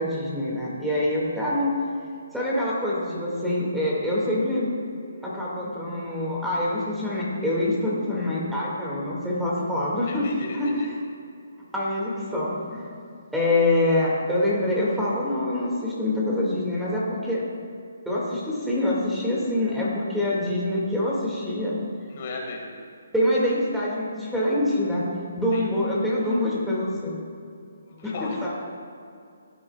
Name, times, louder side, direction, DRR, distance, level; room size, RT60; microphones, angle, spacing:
voice 1, 0.0-1.9 2.3-11.0 11.7-12.9 13.3-17.5 18.1-21.8 23.1-27.2 28.0-28.5, left 1 dB, ahead, -7 dB, 2.0 m, -25 dB
voice 2, 10.1-10.9 22.1-22.7 25.5-25.6 27.8-28.5, left 3 dB, 45° left, 0 dB, 1.8 m, -36 dB
17.5 x 8.7 x 2.3 m, 2.4 s
hypercardioid pair, 150°, 0 cm